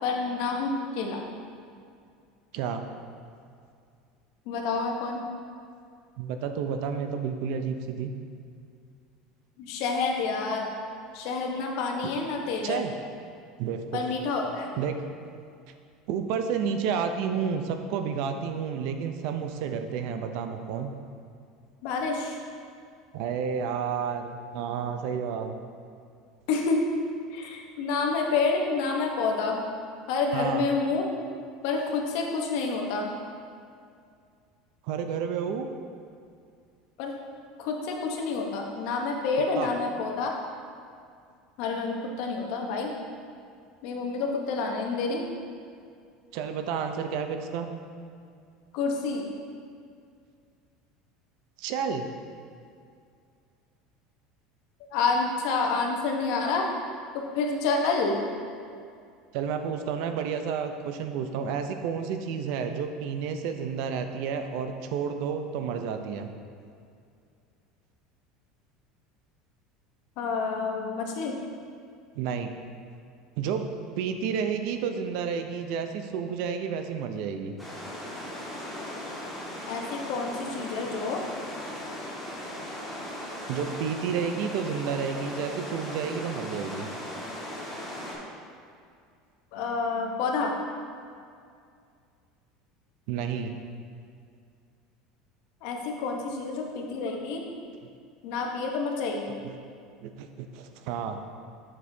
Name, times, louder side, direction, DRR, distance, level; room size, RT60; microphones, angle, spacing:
voice 1, 0.0-1.2 4.5-5.2 9.6-10.7 11.1-12.8 13.9-14.7 21.8-22.4 26.5-26.9 27.3-29.6 30.1-31.1 31.6-33.1 37.0-37.1 37.6-40.3 41.6-42.9 43.8-45.2 48.7-49.3 54.9-56.7 57.1-58.2 70.2-71.3 79.7-81.2 89.5-90.5 95.6-97.4 98.2-99.4, left 4 dB, 70° left, 1 dB, 0.9 m, -28 dB
voice 2, 6.2-8.1 12.6-12.9 13.6-14.0 14.8-15.0 16.1-20.9 23.1-25.6 30.3-30.6 34.8-35.7 39.6-39.7 46.3-47.7 51.6-52.1 59.3-66.3 72.2-72.5 73.4-73.6 74.0-77.6 83.5-86.9 93.1-93.5 99.4-99.6 100.0-101.2, right 7 dB, 65° right, 7 dB, 0.5 m, -30 dB
sound 1, 77.6-88.2, left 1 dB, ahead, 1.5 m, -38 dB
7.4 x 6.2 x 2.7 m, 2.3 s
supercardioid pair, 135°, 0 cm